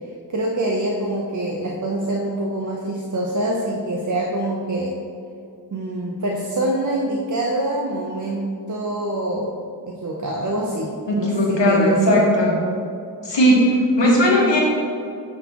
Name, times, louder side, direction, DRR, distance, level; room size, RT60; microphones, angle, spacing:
voice 1, 0.3-4.9 5.7-9.5 9.9-12.0, right 1 dB, 45° right, -2 dB, 0.7 m, -25 dB
voice 2, 11.1-12.5 13.2-14.6, equal, 90° left, -3 dB, 1.4 m, -17 dB
9.5 x 4.1 x 2.9 m, 2.5 s
wide cardioid pair, 60°, 42 cm